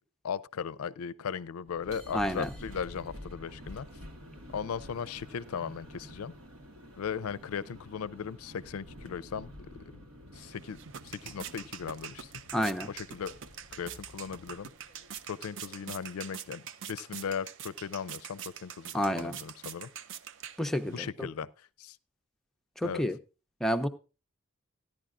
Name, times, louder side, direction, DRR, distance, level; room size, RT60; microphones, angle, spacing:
voice 1, 0.2-3.9 4.5-6.3 7.0-10.0 10.3-10.8 11.0-12.3 12.9-13.3 13.7-14.7 15.3-19.9 20.9-21.5 21.8-22.0 22.8-23.0, left 7 dB, 90° left, 0.4 m, -37 dB
sound 1, 1.7-16.1, equal, 90° right, 1.5 m, -50 dB
voice 2, 2.1-2.5 12.5-12.9 18.9-19.4 20.6-21.1 22.8-23.2 23.6-23.9, equal, ahead, 0.5 m, -29 dB
sound 2, 10.3-21.0, right 9 dB, 60° right, 0.4 m, -45 dB
14.5 x 10.5 x 2.5 m
head